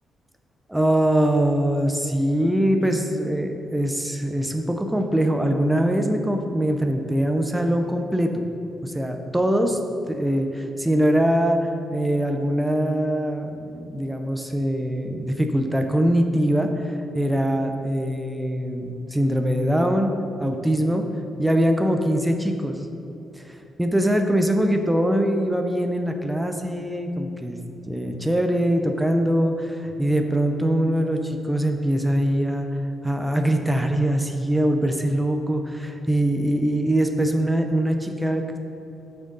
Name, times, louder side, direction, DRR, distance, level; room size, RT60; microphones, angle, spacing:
voice 1, 0.7-8.4 8.8-9.8 10.1-20.1 20.4-21.0 21.4-22.9 23.5-27.6 27.9-32.7 33.0-38.6, right 1 dB, 5° right, 4 dB, 0.5 m, -22 dB
9.0 x 6.4 x 3.8 m, 2.8 s
cardioid pair, 155°, 0 cm